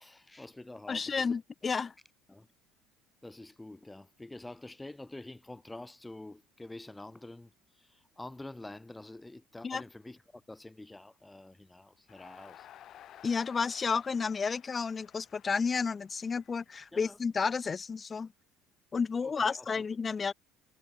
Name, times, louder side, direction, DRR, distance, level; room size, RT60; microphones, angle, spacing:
voice 1, 0.0-1.4 2.3-2.5 3.2-12.7 16.9-17.2 19.2-19.8, left 2 dB, 10° left, 4.2 m, -47 dB
voice 2, 0.9-1.9 9.6-9.8 13.2-18.3 18.9-20.3, left 5 dB, 25° left, 0.8 m, -31 dB
Crowd, 12.1-17.3, left 11 dB, 50° left, 2.4 m, -55 dB
cardioid pair, 115°, 0 cm